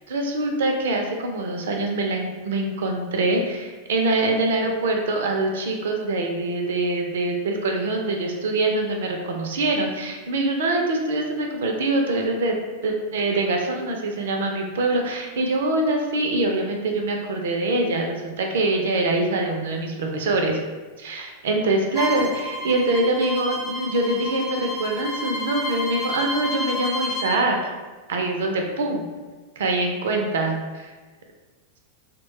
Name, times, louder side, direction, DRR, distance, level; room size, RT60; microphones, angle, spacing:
voice 1, 0.1-12.6 12.8-20.6 21.0-27.7 28.1-29.1 29.6-30.5, right 2 dB, 60° right, 2 dB, 0.4 m, -24 dB
Bowed string instrument, 21.9-27.4, left 1 dB, 20° left, 0.4 m, -30 dB
3.0 x 2.1 x 3.0 m, 1.3 s
figure-of-eight pair, 90°, 0 cm